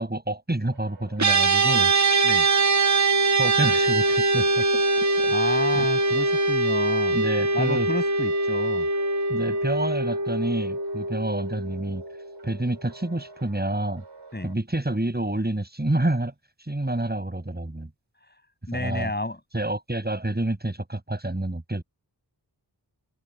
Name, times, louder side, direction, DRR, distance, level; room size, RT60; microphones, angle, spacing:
voice 1, 0.0-1.9 3.4-4.8 5.2-5.3 5.7-5.9 7.1-7.9 9.3-12.0 12.4-14.0 14.4-16.3 16.6-17.9 18.7-19.1 19.5-21.8, right 1 dB, 25° right, 7.5 m, -28 dB
sound 1, 0.7-14.5, right 3 dB, 85° right, 7.7 m, -49 dB
sound 2, 1.2-12.7, right 2 dB, 40° right, 1.5 m, -23 dB
voice 2, 5.3-7.2 7.5-8.9 14.3-14.5 18.7-19.4, left 1 dB, 25° left, 7.8 m, -30 dB
open air
wide cardioid pair, 75°, 42 cm